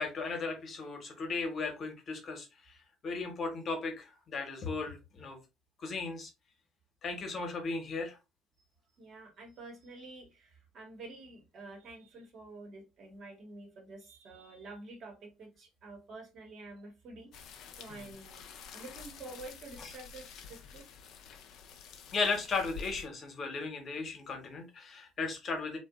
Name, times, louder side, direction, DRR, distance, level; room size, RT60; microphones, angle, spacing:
voice 1, 0.0-2.7 3.0-5.4 5.8-6.3 7.0-8.2 17.9-18.1 19.8-19.9 22.1-25.8, left 4 dB, 45° left, 0.9 m, -36 dB
voice 2, 9.0-18.5 18.7-20.8, right 2 dB, 55° right, 1.1 m, -49 dB
sound 1, 17.3-23.1, left 6 dB, 60° left, 0.4 m, -49 dB
2.6 x 2.3 x 2.3 m
hypercardioid pair, 60°, 0 cm